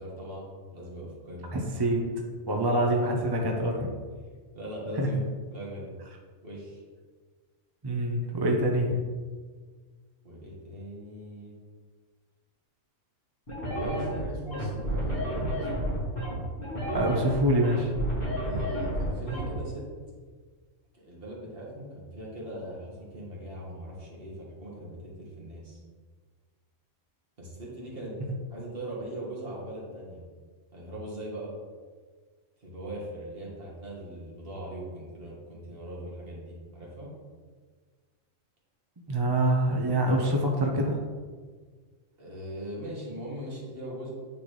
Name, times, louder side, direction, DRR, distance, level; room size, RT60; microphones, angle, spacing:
voice 1, 0.0-1.6 3.1-3.2 4.5-5.2 5.5-5.9 6.4-6.8 10.2-11.6 13.7-15.8 18.4-19.9 20.9-25.8 27.4-28.2 28.5-30.2 30.7-31.5 32.6-37.1 42.2-44.1, right 1 dB, 45° right, -4 dB, 1.9 m, -40 dB
voice 2, 1.5-2.0 2.5-3.9 5.0-5.2 7.8-9.0 16.9-17.9 39.1-41.0, right 1 dB, 25° right, 1 dB, 0.5 m, -25 dB
sound 1, 13.5-19.5, right 1 dB, 45° left, 2.0 m, -31 dB
9.6 x 4.0 x 3.3 m, 1.5 s
omnidirectional pair, 1.3 m